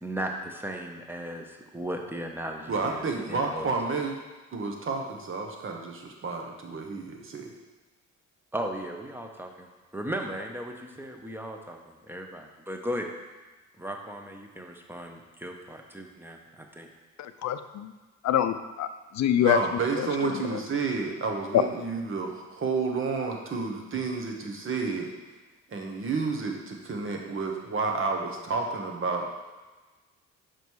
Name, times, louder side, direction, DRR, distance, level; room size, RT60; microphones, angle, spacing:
voice 1, 0.0-3.0 3.3-3.7 8.5-9.7 9.9-13.1 13.8-16.9, right 1 dB, 5° right, 2 dB, 1.0 m, -36 dB
voice 2, 2.7-4.1 4.5-7.5 19.4-25.1 25.7-29.3, right 4 dB, 45° right, 2 dB, 1.2 m, -30 dB
voice 3, 17.2-17.9 18.2-18.9 19.1-19.6 20.0-20.1, left 10 dB, 65° left, 10 dB, 0.5 m, -25 dB
6.2 x 5.1 x 4.7 m, 1.2 s
cardioid pair, 90°, 30 cm